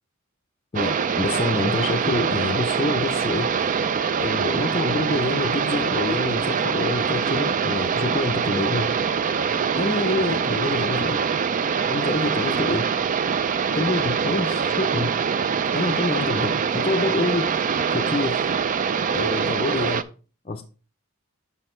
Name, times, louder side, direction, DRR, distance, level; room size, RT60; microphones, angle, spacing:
voice 1, 0.7-3.8 4.2-8.9 9.8-11.3 11.9-12.9 13.7-15.1 15.7-18.6 19.1-20.1 20.4-20.6, left 2 dB, 25° left, 0.5 m, -27 dB
sound 1, 0.8-20.0, right 6 dB, 35° right, 0.4 m, -24 dB
6.2 x 5.6 x 4.3 m
head